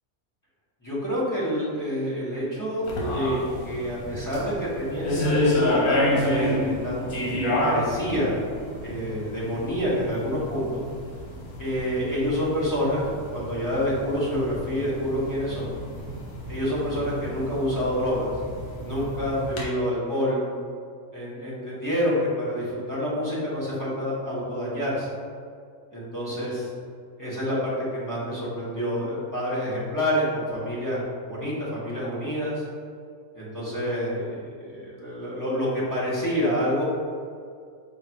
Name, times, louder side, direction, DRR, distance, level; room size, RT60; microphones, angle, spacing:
voice 1, 0.8-8.4 8.8-10.8 11.6-13.1 13.3-15.7 16.5-18.3 18.8-20.4 21.1-25.1 25.9-26.7 27.2-32.6 33.3-36.8, equal, 15° left, -9 dB, 1.0 m, -28 dB
sound 1, 2.8-19.6, left 1 dB, 75° left, 1.4 m, -30 dB
4.4 x 2.6 x 4.5 m, 2.2 s
omnidirectional pair, 1.6 m